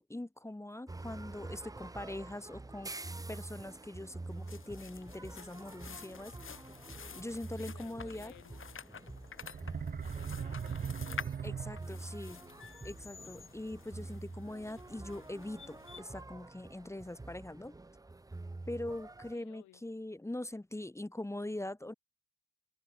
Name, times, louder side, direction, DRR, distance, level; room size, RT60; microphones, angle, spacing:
voice 1, 0.0-3.0 3.3-6.3 7.2-8.3 11.4-12.4 12.8-17.8 18.7-21.9, left 1 dB, 10° left, 1.8 m, -42 dB
sound 1, 0.9-19.4, right 2 dB, 10° right, 0.9 m, -47 dB
sound 2, 4.3-16.0, left 6 dB, 40° left, 4.7 m, -50 dB
voice 2, 7.6-8.7 10.0-11.6 19.3-19.8, left 16 dB, 90° left, 3.8 m, -58 dB
sound 3, 9.4-12.2, right 7 dB, 30° right, 0.5 m, -39 dB
open air
cardioid pair, 90°, 30 cm